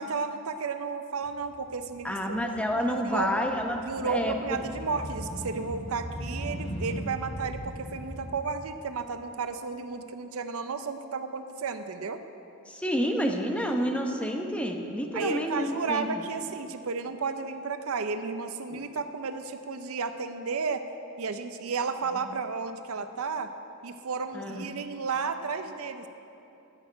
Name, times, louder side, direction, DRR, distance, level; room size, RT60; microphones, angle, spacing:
voice 1, 0.0-2.5 2.7-3.3 3.9-12.2 15.1-20.8 21.2-23.5 23.8-26.1, right 4 dB, 75° right, 9 dB, 0.6 m, -33 dB
Motorcycle, 1.2-8.3, equal, 80° left, 3.8 m, -39 dB
voice 2, 2.0-4.6 12.7-16.2 18.7-18.8 22.1-22.2 24.3-24.8, equal, 5° left, 3 dB, 0.9 m, -29 dB
13.0 x 6.5 x 9.7 m, 2.9 s
head